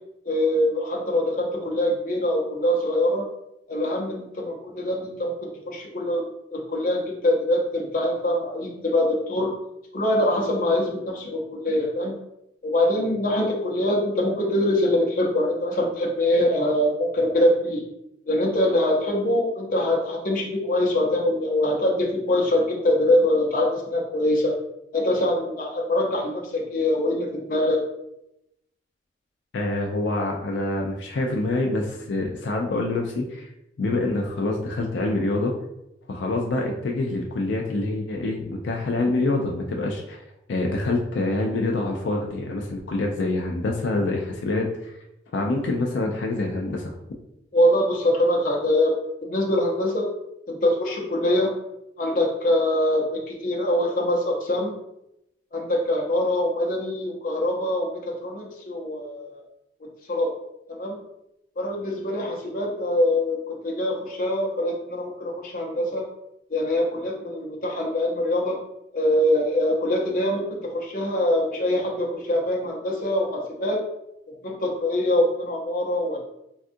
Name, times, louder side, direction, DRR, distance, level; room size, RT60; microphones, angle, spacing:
voice 1, 0.2-3.2 3.7-6.2 6.5-9.5 9.9-12.1 12.6-17.8 18.3-24.5 24.9-27.8 47.5-50.1 50.5-51.5 52.0-54.7 55.5-59.4 60.1-60.3 60.7-61.0 61.6-66.0 66.5-68.5 68.9-73.8 74.4-76.2, left 1 dB, 50° left, -1 dB, 0.6 m, -23 dB
voice 2, 29.5-33.5 33.8-35.5 36.1-40.2 40.5-44.7 45.3-46.9, left 2 dB, 85° left, 1 dB, 0.4 m, -26 dB
3.4 x 2.3 x 2.6 m, 0.85 s
head